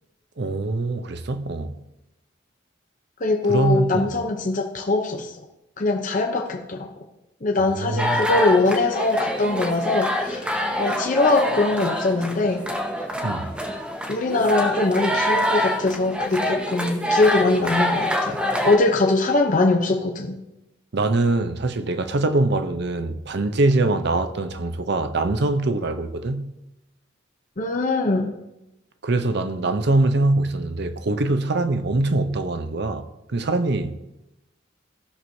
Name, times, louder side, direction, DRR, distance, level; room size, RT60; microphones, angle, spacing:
voice 1, 0.4-1.8 3.5-4.2 7.6-8.3 13.2-13.6 20.9-26.5 29.0-34.0, right 2 dB, 60° right, 0.6 m, -23 dB
voice 2, 3.2-5.3 5.8-6.9 7.4-12.6 14.1-18.4 18.6-20.4 27.6-28.4, left 2 dB, 40° left, 0.7 m, -22 dB
sound 1, 8.0-18.8, equal, 5° right, 0.8 m, -26 dB
15.5 x 6.1 x 2.7 m
head